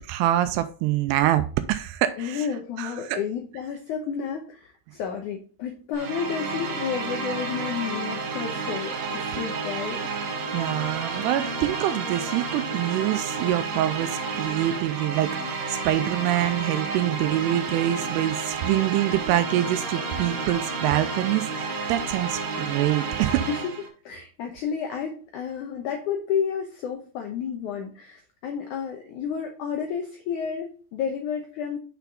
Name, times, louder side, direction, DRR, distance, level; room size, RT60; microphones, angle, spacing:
voice 1, 0.0-2.5 2.8-3.2 10.5-23.5, right 13 dB, 90° right, 2.6 m, -25 dB
voice 2, 2.2-10.2 23.5-23.7 24.1-31.8, left 7 dB, 75° left, 1.8 m, -31 dB
sound 1, 5.9-23.9, right 4 dB, 60° right, 1.8 m, -31 dB
7.1 x 5.8 x 3.5 m
omnidirectional pair, 4.7 m